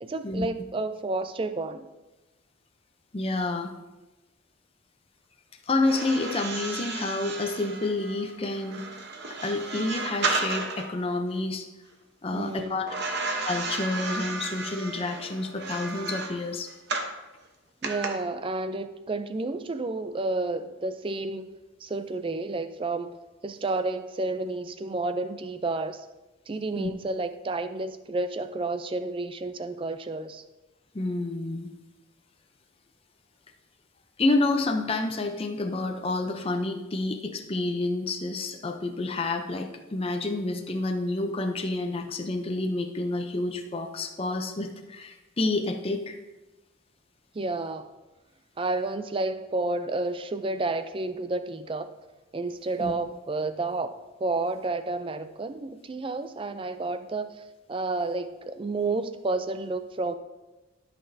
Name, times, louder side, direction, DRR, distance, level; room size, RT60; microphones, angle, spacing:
voice 1, 0.0-1.9 12.3-12.9 17.8-21.5 21.8-26.1 26.5-30.4 47.3-47.9 48.6-51.9 52.3-57.4 57.7-60.1, right 2 dB, 25° right, 0.4 m, -31 dB
voice 2, 3.1-3.7 5.7-8.8 9.3-11.7 12.2-13.0 13.4-16.7 26.8-26.9 30.9-31.7 34.2-46.2 52.8-52.9, left 2 dB, 25° left, 0.5 m, -29 dB
sound 1, 5.8-10.9 12.9-17.2 17.8-18.1, right 3 dB, 50° right, 0.9 m, -33 dB
13.5 x 5.9 x 2.7 m
head